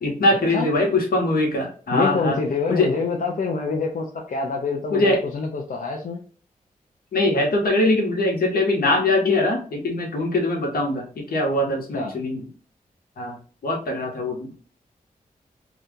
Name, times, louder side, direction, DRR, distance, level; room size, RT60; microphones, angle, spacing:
voice 1, 0.0-2.4 2.7-2.9 4.9-5.2 7.1-12.4 13.2-13.4 13.6-14.5, left 2 dB, 80° left, 1 dB, 1.1 m, -22 dB
voice 2, 1.9-6.2 11.9-12.1, left 4 dB, 65° left, 0 dB, 0.6 m, -26 dB
2.8 x 2.4 x 3.5 m, 0.42 s
cardioid pair, 65°, 15 cm